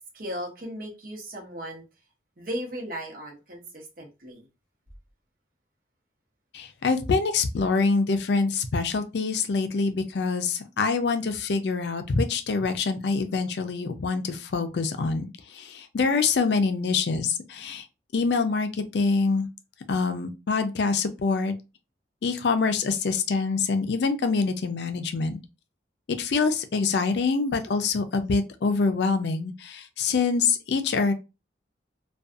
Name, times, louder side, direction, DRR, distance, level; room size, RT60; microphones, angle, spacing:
voice 1, 0.1-1.8 2.4-4.5, equal, 50° right, 0.8 m, -36 dB
voice 2, 6.5-15.2 15.5-17.8 18.1-19.5 19.9-21.5 22.2-25.4 26.1-31.1, left 4 dB, 70° left, 0.4 m, -25 dB
2.6 x 2.3 x 2.4 m
head